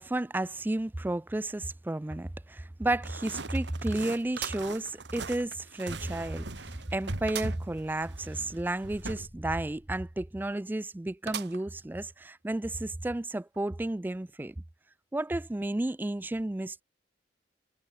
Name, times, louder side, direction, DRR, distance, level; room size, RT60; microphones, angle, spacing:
voice 1, 0.0-14.5 15.1-16.8, right 1 dB, 10° right, 0.3 m, -32 dB
sound 1, 2.1-2.2 2.6-2.7 4.3-5.4 5.9-6.0 7.3-7.7 8.1-8.2 8.4-8.5 11.3-11.9 12.5-12.6 13.5-13.6, right 10 dB, 60° right, 0.6 m, -40 dB
sound 2, 3.0-9.3, right 3 dB, 80° right, 2.1 m, -41 dB
sound 3, 8.9-10.3, equal, 20° left, 2.5 m, -53 dB
head